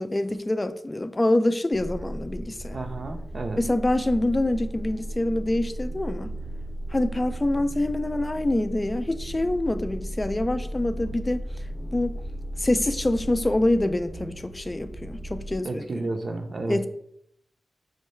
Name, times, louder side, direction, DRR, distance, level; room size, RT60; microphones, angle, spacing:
voice 1, 0.0-2.8 3.6-6.3 6.9-11.5 11.9-12.2 12.6-15.9 16.7-16.9, left 1 dB, 30° left, 0.3 m, -25 dB
sound 1, 1.7-15.6, right 1 dB, 10° right, 0.6 m, -35 dB
voice 2, 2.7-3.6 15.6-16.9, right 2 dB, 60° right, 0.6 m, -31 dB
5.5 x 2.2 x 3.1 m
cardioid pair, 45°, 0 cm